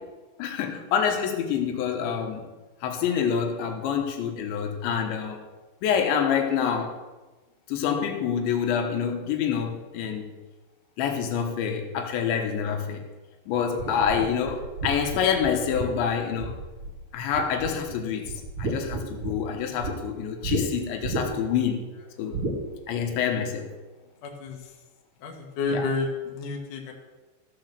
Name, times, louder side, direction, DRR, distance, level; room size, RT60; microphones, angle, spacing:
voice 1, 0.4-2.5 2.8-5.4 5.8-6.9 7.7-10.3 11.0-13.0 13.5-16.6 17.1-18.3 18.6-21.9 22.2-22.4 22.9-23.7 25.7-25.8, left 7 dB, 90° left, 3 dB, 3.5 m, -27 dB
sound 1, 13.8-17.0 17.3-17.9 18.2-19.9 20.4-20.6 21.0-21.5 22.3-22.6, right 3 dB, 35° right, 2.5 m, -32 dB
voice 2, 24.2-24.6 25.2-26.9, left 3 dB, 55° left, 0 dB, 2.7 m, -30 dB
14.5 x 6.0 x 6.6 m, 1.2 s
omnidirectional pair, 5.1 m